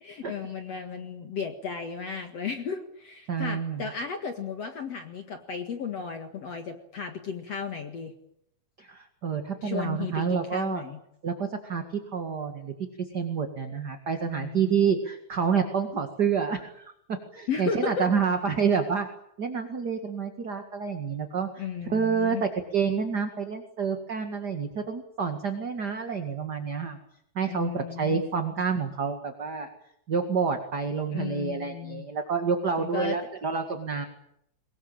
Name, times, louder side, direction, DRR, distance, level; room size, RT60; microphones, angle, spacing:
voice 1, 0.0-8.1 9.6-11.0 14.2-14.8 17.5-18.1 21.6-22.4 27.5-28.2 31.1-32.1 32.8-33.2, left 6 dB, 50° left, 6 dB, 2.4 m, -34 dB
voice 2, 3.3-3.9 8.8-10.8 11.2-11.8 12.1-12.7 13.1-19.1 19.4-21.6 21.9-27.0 27.4-29.7 30.1-34.0, right 6 dB, 35° right, 6 dB, 1.9 m, -28 dB
23.5 x 21.5 x 8.9 m, 0.74 s
omnidirectional pair, 4.3 m